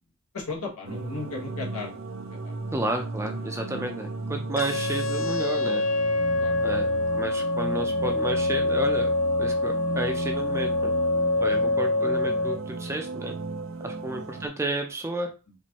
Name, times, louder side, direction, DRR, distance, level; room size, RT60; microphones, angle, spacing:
voice 1, 0.3-2.6 6.4-6.8 11.5-11.7 14.1-14.4 15.5-15.6, left 3 dB, 80° left, -1 dB, 1.4 m, -37 dB
sound 1, 0.8-14.5, right 3 dB, 60° right, 0.5 m, -35 dB
voice 2, 2.7-5.9 6.6-6.9 7.2-9.1 9.4-10.9 11.4-13.4 13.8-15.3, right 1 dB, 10° right, 3 dB, 0.5 m, -31 dB
sound 2, 4.6-12.6, left 2 dB, 60° left, 0.6 m, -25 dB
4.3 x 2.6 x 3.0 m, 0.32 s
head